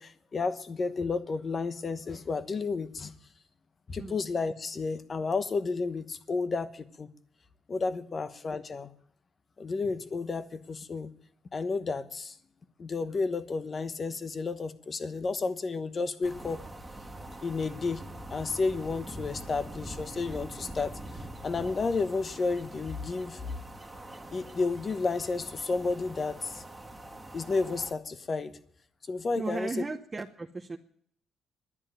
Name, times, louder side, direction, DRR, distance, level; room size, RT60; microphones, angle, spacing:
voice 1, 0.0-3.1 3.9-7.1 7.7-8.9 9.6-11.1 11.5-12.3 12.8-16.6 17.4-23.4 24.3-26.6 27.3-28.5 29.1-29.7, left 4 dB, 40° left, 12 dB, 1.1 m, -32 dB
sound 1, 16.2-27.9, right 1 dB, 10° right, 1.6 m, -44 dB
voice 2, 29.4-30.8, right 3 dB, 25° right, 3 dB, 0.9 m, -35 dB
11.0 x 9.9 x 9.0 m, 0.64 s
cardioid pair, 90°, 0 cm